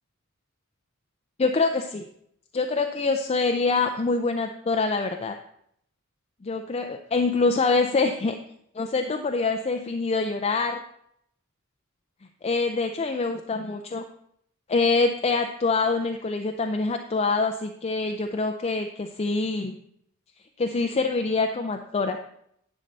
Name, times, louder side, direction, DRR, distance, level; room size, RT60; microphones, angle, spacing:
voice 1, 1.4-2.1 2.5-5.4 6.4-8.4 8.7-10.8 12.4-14.0 14.7-19.7 20.6-22.2, left 3 dB, 30° left, 5 dB, 0.4 m, -25 dB
10.5 x 6.6 x 4.0 m, 0.72 s
head